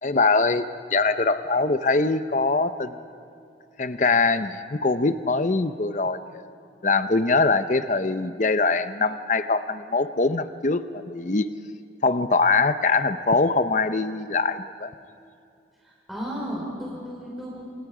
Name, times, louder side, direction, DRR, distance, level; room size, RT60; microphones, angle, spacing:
voice 1, 0.0-2.9 3.8-6.4 6.8-11.5 12.0-14.9, left 3 dB, 40° left, 11 dB, 0.7 m, -23 dB
voice 2, 15.8-17.6, equal, ahead, -6 dB, 4.6 m, -34 dB
28.0 x 26.5 x 5.0 m, 2.5 s
head